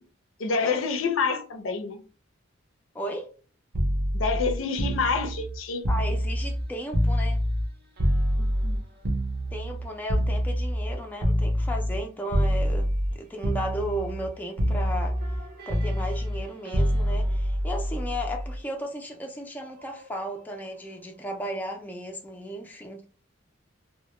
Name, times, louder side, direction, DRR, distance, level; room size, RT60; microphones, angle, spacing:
voice 1, 0.4-2.0 4.1-5.8 8.4-8.8, left 5 dB, 75° left, 0.5 m, -27 dB
voice 2, 2.9-3.3 5.9-7.4 9.5-12.9 13.2-15.2 15.7-23.1, equal, 10° left, 0.3 m, -35 dB
sound 1, 3.7-7.7 8.0-12.0 12.3-13.2 13.4-14.3 14.6-18.6 19.8-20.0, equal, 50° right, 0.6 m, -26 dB
2.1 x 2.0 x 3.0 m
head